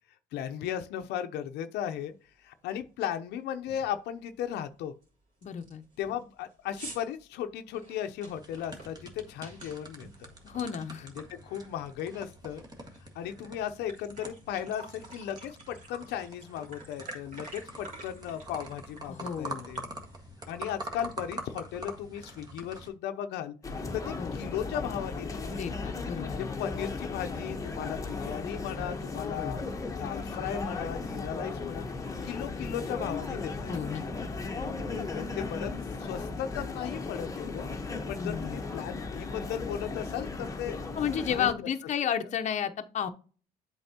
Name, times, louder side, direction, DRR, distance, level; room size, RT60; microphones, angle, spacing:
voice 1, 0.3-2.1 2.4-4.9 6.0-10.3 11.0-12.6 13.1-19.8 20.5-23.5 23.9-25.6 26.2-29.6 30.0-31.8 32.2-34.0 35.1-35.7 36.0-37.7 38.1-40.8 41.3-41.5, left 10 dB, 80° left, 0.7 m, -36 dB
sound 1, 2.0-2.1 2.6-2.9 3.2-3.3 3.7-4.0 4.4-4.5 5.0-5.1 5.4-11.4 11.7-13.0 13.4-13.5 13.7-20.2, right 2 dB, 50° right, 3.4 m, -50 dB
voice 2, 5.4-5.8 10.4-11.1 19.1-19.7 24.2-24.4 25.5-26.5 29.4-29.7 33.7-34.0 38.2-38.6 40.9-43.1, left 8 dB, 45° left, 0.8 m, -32 dB
sound 2, 8.3-22.9, right 1 dB, 25° right, 1.6 m, -45 dB
sound 3, 23.6-41.5, left 3 dB, 20° left, 1.1 m, -36 dB
7.8 x 4.7 x 2.8 m
cardioid pair, 110°, 17 cm